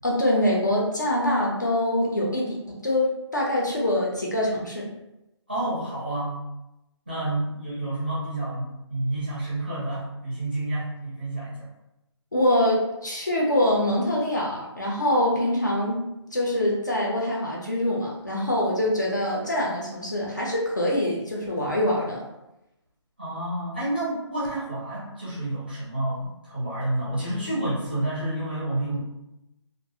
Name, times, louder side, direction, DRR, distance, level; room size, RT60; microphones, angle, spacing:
voice 1, 0.0-4.9 12.3-16.0 16.3-22.3, left 1 dB, 40° left, -3 dB, 0.4 m, -24 dB
voice 2, 5.5-6.4 7.1-11.7 23.2-29.0, right 1 dB, 20° right, -8 dB, 0.5 m, -29 dB
2.3 x 2.0 x 2.5 m, 0.90 s
hypercardioid pair, 180°, 16 cm